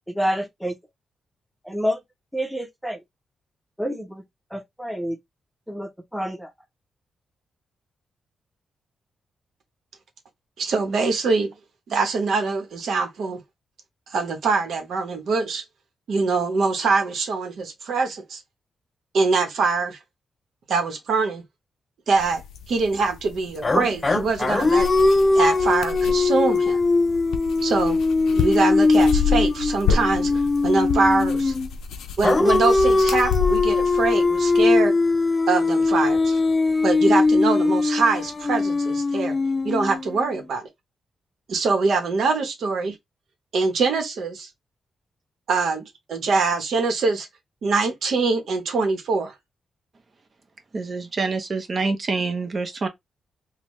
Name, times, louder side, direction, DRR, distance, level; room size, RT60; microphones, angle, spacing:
voice 1, 0.1-0.7 1.7-2.0 2.3-3.0 3.8-4.2 4.5-5.2 5.7-6.5, equal, ahead, 0.9 m, -28 dB
voice 2, 10.6-11.5 11.9-13.4 14.1-15.6 16.1-18.4 19.1-20.0 20.7-21.4 22.1-22.4 22.7-24.9 25.3-26.8 27.6-28.0 28.3-30.3 30.6-31.5 32.2-34.9 35.5-36.4 36.8-39.3 39.6-40.6 41.5-43.0 43.5-44.5 45.5-47.3 47.6-49.3, right 4 dB, 75° right, 1.0 m, -23 dB
sound 1, 22.2-34.6, left 6 dB, 90° left, 0.5 m, -30 dB
sound 2, 23.6-31.7 32.2-40.3, left 3 dB, 30° left, 0.4 m, -20 dB
voice 3, 50.7-52.9, right 3 dB, 45° right, 0.9 m, -26 dB
3.6 x 2.2 x 3.1 m
cardioid pair, 90°, 0 cm